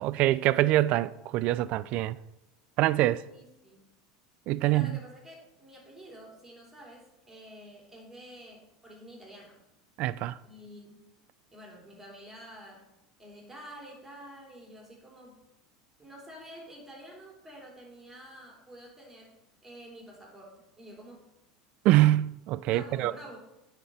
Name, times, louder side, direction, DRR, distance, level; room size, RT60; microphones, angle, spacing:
voice 1, 0.0-2.2 2.8-3.3 4.5-4.9 10.0-10.4 21.8-23.1, right 15 dB, 55° right, 0.3 m, -24 dB
voice 2, 3.3-3.9 4.6-9.6 10.4-11.1 11.5-12.9 13.2-15.4 16.0-19.3 19.6-21.3 22.7-23.4, equal, 10° right, 3.0 m, -49 dB
9.4 x 4.3 x 5.0 m
hypercardioid pair, 100°, 2 cm